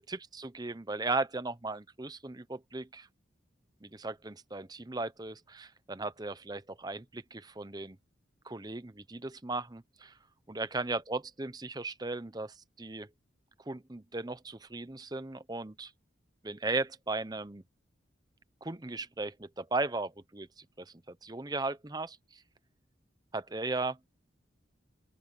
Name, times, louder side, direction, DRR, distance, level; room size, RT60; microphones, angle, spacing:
voice 1, 0.0-3.1 3.8-8.0 8.4-10.2 10.5-13.1 13.7-15.9 16.4-17.6 18.6-22.4 23.3-24.0, right 3 dB, 20° right, 0.8 m, -37 dB
open air
head